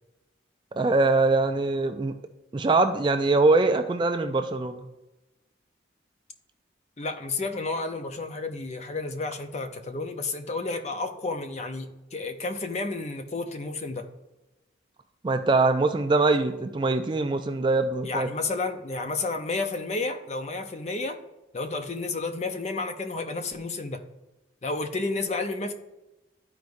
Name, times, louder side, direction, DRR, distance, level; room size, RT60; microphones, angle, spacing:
voice 1, 0.8-2.1 2.5-4.9 15.2-18.3, right 3 dB, 25° right, 7 dB, 0.3 m, -23 dB
voice 2, 7.0-14.0 18.0-21.2 21.5-24.0 24.6-25.7, left 3 dB, 35° left, 7 dB, 0.6 m, -31 dB
12.0 x 4.6 x 2.6 m, 1.0 s
head